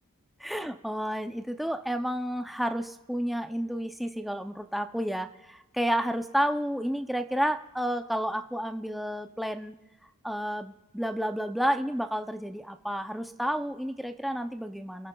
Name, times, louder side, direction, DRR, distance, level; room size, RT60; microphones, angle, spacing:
voice 1, 0.4-9.7 10.2-15.1, equal, ahead, 7 dB, 0.4 m, -31 dB
28.5 x 15.0 x 2.2 m, 1.2 s
head